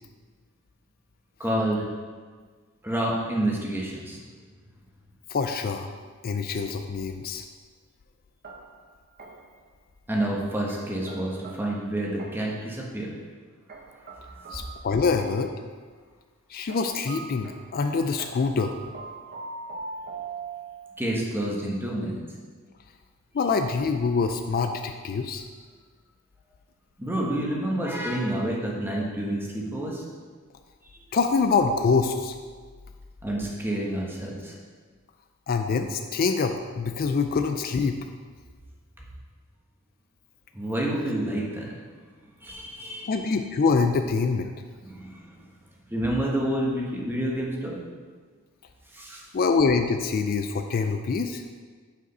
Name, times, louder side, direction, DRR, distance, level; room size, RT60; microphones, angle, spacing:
voice 1, 1.4-1.9 2.8-4.2 10.1-13.1 14.4-14.6 21.0-22.2 27.0-30.0 30.9-31.0 33.2-34.5 40.5-41.7 42.4-43.1 44.8-45.3 45.9-47.8 48.9-49.2, right 1 dB, 10° right, -3 dB, 1.2 m, -29 dB
voice 2, 5.3-5.9 6.2-7.4 14.5-15.5 16.5-18.7 23.3-25.4 31.1-32.4 35.5-38.0 43.1-44.5 49.3-51.4, left 4 dB, 45° left, 6 dB, 0.4 m, -25 dB
sound 1, 8.4-9.7 10.7-12.7 13.7-15.7 16.7-21.0, right 4 dB, 45° right, 0.7 m, -42 dB
6.6 x 5.0 x 5.4 m, 1.5 s
head